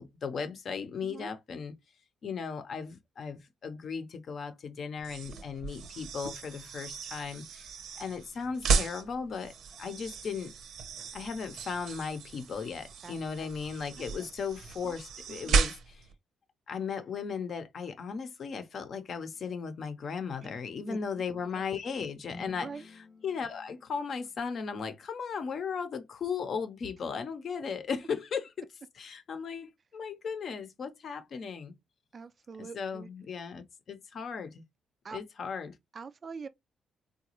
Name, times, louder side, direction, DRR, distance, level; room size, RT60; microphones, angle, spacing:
voice 1, 0.0-1.7 2.2-7.7 8.0-10.5 11.1-15.7 16.7-22.7 23.2-28.6 29.0-31.7 32.7-34.6 35.1-35.7, left 6 dB, 55° left, 0.7 m, -36 dB
sound 1, 5.0-16.1, right 5 dB, 75° right, 0.8 m, -34 dB
voice 2, 13.0-13.5 14.0-14.1 15.3-15.6 20.9-21.0 21.5-21.6 22.6-22.9 32.1-33.1 35.0-35.2 35.9-36.5, right 5 dB, 40° right, 0.3 m, -44 dB
sound 2, 22.3-24.7, left 2 dB, 10° left, 0.5 m, -51 dB
3.8 x 2.3 x 2.9 m
cardioid pair, 90°, 0 cm